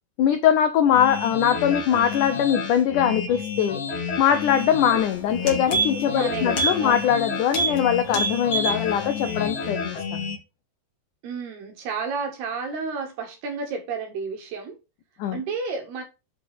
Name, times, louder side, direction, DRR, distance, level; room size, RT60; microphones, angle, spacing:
voice 1, 0.2-3.8 4.2-10.3 15.2-15.4, left 9 dB, 85° left, 1.8 m, -22 dB
sound 1, 0.9-10.4, left 5 dB, 50° left, 3.7 m, -31 dB
sound 2, 4.8-5.0 5.3-6.1 6.5-6.8 7.1-7.2 7.5-7.8 8.1-8.8 9.2-9.3, right 3 dB, 35° left, 2.9 m, -25 dB
voice 2, 6.1-7.0 11.2-14.8 15.3-16.0, right 5 dB, 75° right, 3.9 m, -31 dB
8.8 x 5.8 x 3.6 m
omnidirectional pair, 4.7 m